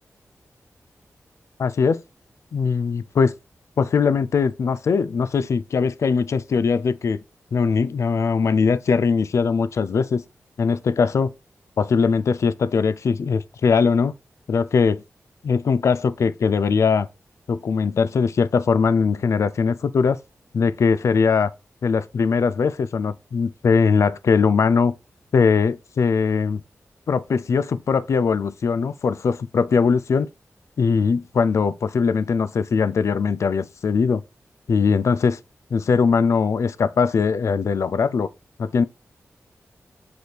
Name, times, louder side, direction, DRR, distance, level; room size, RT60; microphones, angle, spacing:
voice 1, 1.6-2.0 2.5-3.3 3.8-7.2 7.5-10.2 10.6-11.3 11.8-14.1 14.5-15.0 15.4-17.1 17.5-20.2 20.5-21.5 21.8-24.9 25.3-26.6 27.1-30.3 30.8-34.2 34.7-35.4 35.7-38.3 38.6-38.8, left 5 dB, 65° left, 0.4 m, -20 dB
6.0 x 5.3 x 3.3 m
wide cardioid pair, 120°, 5 cm